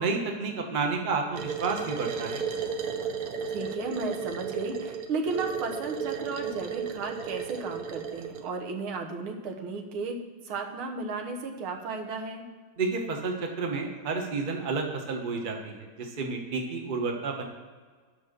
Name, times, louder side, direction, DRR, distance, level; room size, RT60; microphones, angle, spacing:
voice 1, 0.0-2.4 12.8-17.4, right 4 dB, 30° right, 2 dB, 0.9 m, -30 dB
sound 1, 1.3-8.5, right 6 dB, 60° right, 1.1 m, -34 dB
voice 2, 3.5-10.2 10.5-12.4, right 4 dB, 80° right, 3 dB, 1.9 m, -34 dB
9.9 x 5.7 x 6.6 m, 1.5 s
omnidirectional pair, 2.3 m